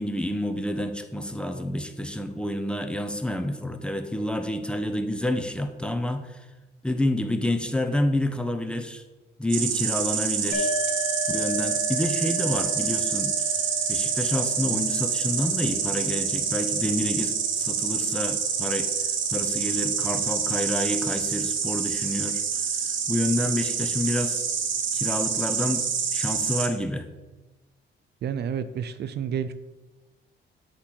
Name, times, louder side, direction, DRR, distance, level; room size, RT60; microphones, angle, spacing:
voice 1, 0.0-6.4 6.8-9.0 9.4-10.7 11.3-13.4 13.9-18.9 19.3-22.4 23.1-24.4 24.9-25.8 26.1-27.1, left 1 dB, 5° left, 7 dB, 0.6 m, -28 dB
Insect, 9.5-26.7, right 6 dB, 75° right, 1.0 m, -27 dB
sound 1, 10.5-18.0, left 1 dB, 45° left, 1.4 m, -35 dB
voice 2, 28.2-29.5, right 8 dB, 55° right, 12 dB, 0.4 m, -30 dB
8.1 x 3.1 x 5.9 m, 1.1 s
cardioid pair, 90°, 20 cm